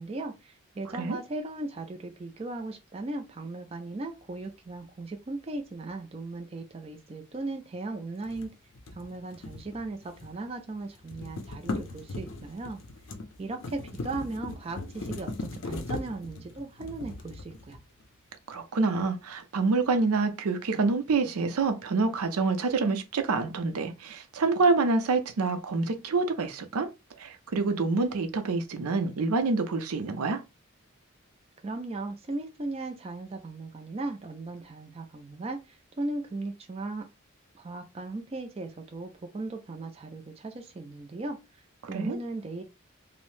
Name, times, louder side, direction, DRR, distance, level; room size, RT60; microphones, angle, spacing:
voice 1, 0.0-8.5 8.9-12.8 13.4-17.8 31.6-37.1 37.5-42.6, right 2 dB, 25° right, 0.4 m, -37 dB
sound 1, 8.2-10.5 10.7-18.0, left 2 dB, 60° left, 0.5 m, -39 dB
voice 2, 18.5-26.9 27.2-30.4 41.9-42.2, right 3 dB, 85° right, 0.5 m, -27 dB
2.6 x 2.0 x 3.1 m
head